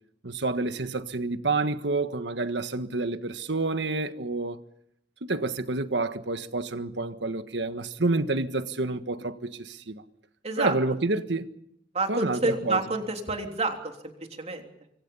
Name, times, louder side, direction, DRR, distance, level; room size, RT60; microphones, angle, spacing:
voice 1, 0.2-4.6 5.2-10.0 10.6-11.5 12.1-12.8, right 3 dB, 80° right, 1.5 m, -28 dB
voice 2, 10.4-10.7 11.9-14.1 14.4-14.7, right 3 dB, 40° right, 3.4 m, -28 dB
26.0 x 24.5 x 5.6 m
head